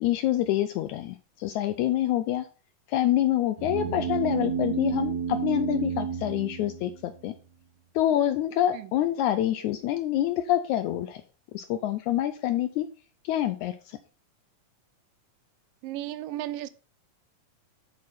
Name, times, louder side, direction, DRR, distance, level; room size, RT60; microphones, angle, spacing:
voice 1, 0.0-2.5 2.9-7.4 8.0-11.2 11.5-12.9 13.2-14.0, left 12 dB, 85° left, 1.7 m, -26 dB
sound 1, 3.6-7.3, right 7 dB, 70° right, 2.1 m, -30 dB
voice 2, 15.8-16.7, right 13 dB, 85° right, 2.3 m, -34 dB
7.3 x 6.2 x 4.2 m
omnidirectional pair, 3.8 m